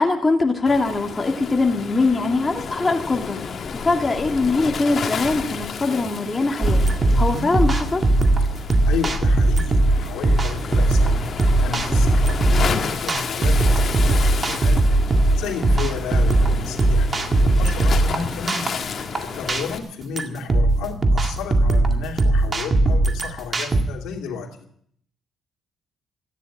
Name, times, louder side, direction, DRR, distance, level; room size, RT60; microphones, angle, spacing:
voice 1, 0.0-6.8 7.2-8.0, left 3 dB, 25° left, 2 dB, 2.3 m, -22 dB
Waves surf, 0.7-19.8, left 6 dB, 50° left, 1.8 m, -31 dB
sound 1, 6.6-23.8, right 2 dB, 30° right, 2.0 m, -19 dB
voice 2, 7.1-7.5 8.5-11.3 11.6-14.8 15.4-17.1 17.4-18.7 19.2-24.6, left 6 dB, 90° left, 2 dB, 2.6 m, -32 dB
14.5 x 10.0 x 8.9 m, 0.66 s
cardioid pair, 90°, 0 cm